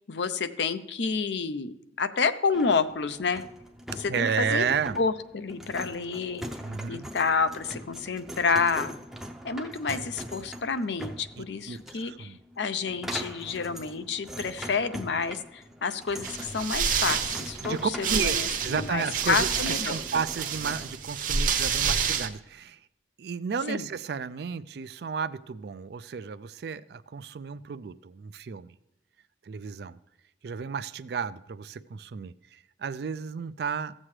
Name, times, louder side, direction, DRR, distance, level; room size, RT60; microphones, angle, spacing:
voice 1, 0.1-3.4 3.9-4.6 5.0-6.4 6.9-9.0 9.4-20.0 23.7-23.9, left 5 dB, 75° left, 12 dB, 0.6 m, -29 dB
sound 1, 2.5-21.0, equal, ahead, 0.6 m, -42 dB
voice 2, 4.1-5.0 6.6-7.1 11.4-12.4 17.6-22.8 23.2-28.8 29.5-30.0 30.4-33.9, right 6 dB, 60° right, 14 dB, 0.4 m, -32 dB
sound 2, 16.2-22.3, right 6 dB, 45° right, 0.8 m, -28 dB
15.5 x 7.4 x 3.2 m, 0.89 s
head